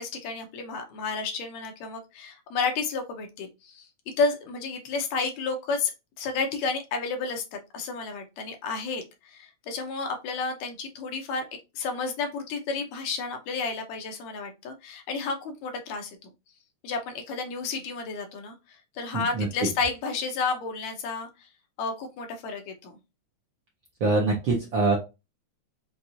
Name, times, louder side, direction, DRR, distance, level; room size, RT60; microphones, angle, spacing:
voice 1, 0.0-5.9 6.2-11.5 11.8-16.3 16.8-18.6 19.0-21.3 21.8-23.0, left 4 dB, 75° left, 4 dB, 2.2 m, -31 dB
voice 2, 19.1-19.5 24.0-25.0, right 3 dB, 65° right, -1 dB, 1.2 m, -24 dB
5.9 x 2.6 x 2.7 m, 0.25 s
omnidirectional pair, 3.3 m